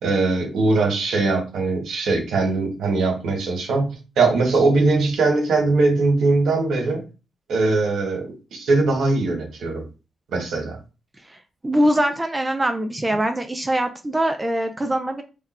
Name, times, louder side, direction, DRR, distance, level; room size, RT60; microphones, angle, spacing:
voice 1, 0.0-7.0 7.5-9.8 10.3-10.8, right 3 dB, 85° right, 2 dB, 1.3 m, -21 dB
voice 2, 11.6-15.2, right 1 dB, 15° right, 6 dB, 0.4 m, -22 dB
3.6 x 2.3 x 4.2 m, 0.31 s
wide cardioid pair, 130°, 0 cm